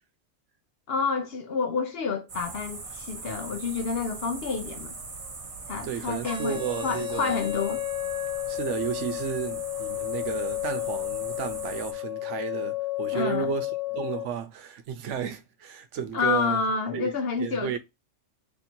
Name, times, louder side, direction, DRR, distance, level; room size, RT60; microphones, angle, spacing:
voice 1, 0.9-4.9 5.7-7.8 13.1-13.5 16.1-17.8, left 5 dB, 60° left, 0.8 m, -29 dB
sound 1, 2.3-11.9, right 4 dB, 35° right, 0.6 m, -41 dB
voice 2, 5.8-7.4 8.5-16.6 16.9-17.8, right 8 dB, 70° right, 0.9 m, -33 dB
sound 2, 6.2-14.2, left 16 dB, 15° right, 1.2 m, -32 dB
3.2 x 2.7 x 4.3 m
omnidirectional pair, 1.3 m